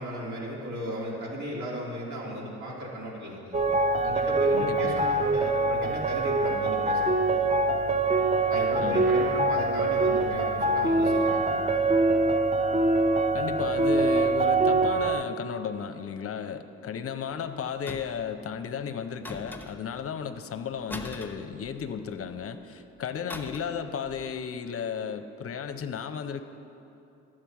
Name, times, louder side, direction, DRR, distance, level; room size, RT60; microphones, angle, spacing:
voice 1, 0.0-3.6 4.0-7.1 8.5-11.5, equal, 70° right, -4 dB, 2.5 m, -36 dB
sound 1, 3.5-15.2, right 2 dB, 20° right, 0.7 m, -24 dB
voice 2, 4.5-5.1 8.8-9.1 13.3-26.4, left 7 dB, 45° left, 8 dB, 0.6 m, -34 dB
sound 2, 17.9-18.3 19.2-20.0 20.9-22.1 23.3-23.8 24.1-24.3, left 2 dB, 5° left, 0.9 m, -41 dB
11.5 x 7.6 x 4.6 m, 2.8 s
supercardioid pair, 60°, 31 cm